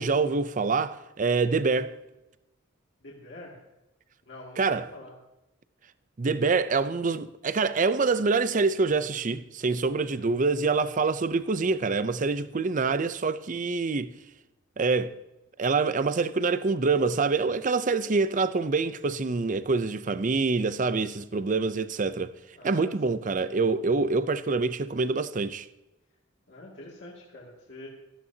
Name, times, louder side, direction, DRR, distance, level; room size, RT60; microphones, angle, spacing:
voice 1, 0.0-2.0 4.6-4.9 6.2-14.1 14.8-15.2 15.6-22.3 22.6-25.7, right 4 dB, 40° right, 0.5 m, -26 dB
voice 2, 3.0-3.6 4.2-5.1 10.1-10.3 22.6-23.1 26.5-27.9, left 2 dB, 60° left, 2.3 m, -46 dB
17.0 x 14.0 x 2.8 m
head